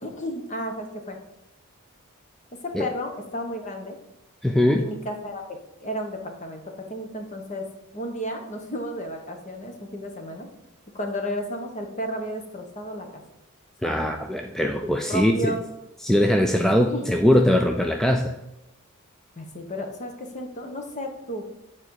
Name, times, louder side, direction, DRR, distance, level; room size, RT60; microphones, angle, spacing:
voice 1, 0.0-1.2 2.6-4.0 4.7-7.7 7.9-10.5 10.9-13.2 13.8-14.0 15.1-15.6 16.9-17.1 19.4-21.5, equal, 35° left, 4 dB, 1.2 m, -33 dB
voice 2, 4.4-4.9 13.8-15.5 16.0-18.3, left 1 dB, ahead, 3 dB, 0.4 m, -21 dB
8.4 x 4.3 x 4.8 m, 0.92 s
head